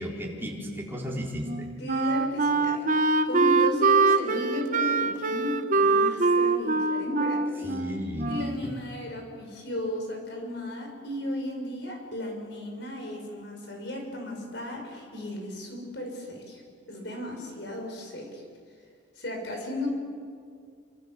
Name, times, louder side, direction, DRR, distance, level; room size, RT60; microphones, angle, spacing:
voice 1, 0.0-1.7 7.6-8.4, equal, 10° right, -2 dB, 4.2 m, -34 dB
Wind instrument woodwind instrument, 1.4-8.7, right 3 dB, 40° right, 1.0 m, -24 dB
voice 2, 1.8-7.8 8.2-16.6 16.9-18.4 19.1-19.9, left 1 dB, 60° left, 2 dB, 6.2 m, -35 dB
27.0 x 26.0 x 7.7 m, 2.2 s
head